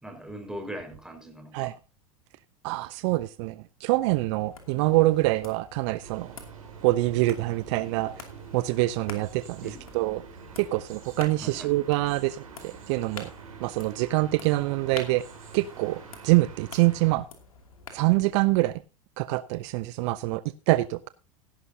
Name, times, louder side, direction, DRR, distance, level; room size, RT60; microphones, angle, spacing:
voice 1, 0.0-1.7 9.6-9.9 11.4-11.7, right 1 dB, 5° right, 5.0 m, -40 dB
voice 2, 2.6-6.3 6.8-8.2 8.5-10.2 10.6-13.3 13.6-15.2 15.5-17.2 17.9-18.8 19.2-21.1, right 19 dB, 55° right, 0.5 m, -25 dB
sound 1, 4.5-18.3, left 5 dB, 85° left, 2.6 m, -48 dB
sound 2, 6.0-17.2, right 7 dB, 85° right, 3.4 m, -47 dB
16.5 x 11.5 x 2.8 m
hypercardioid pair, 85°, 18 cm